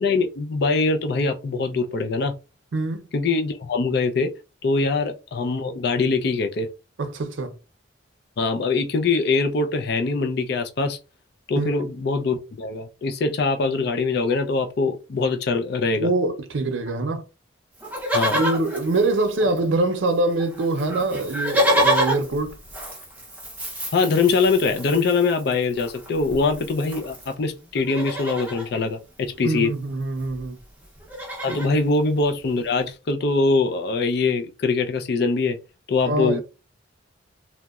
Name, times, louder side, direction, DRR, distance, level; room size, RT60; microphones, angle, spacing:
voice 1, 0.0-2.3 3.1-4.3 4.6-6.7 8.4-11.0 11.5-16.1 18.1-18.4 23.9-29.7 31.4-35.6 35.9-36.4, left 3 dB, 55° left, 0.4 m, -23 dB
voice 2, 2.7-3.0 7.0-7.5 11.6-11.8 16.0-17.2 18.3-22.6 29.4-30.6 31.5-31.6 36.0-36.4, right 2 dB, 80° right, 0.5 m, -24 dB
Livestock farm animals working animals, 17.8-19.8 20.1-20.2 20.4-27.3 27.8-28.7 29.9-30.0 30.2-30.5 30.8-31.8 32.4-32.5, equal, 10° right, 0.5 m, -28 dB
2.8 x 2.1 x 2.3 m
head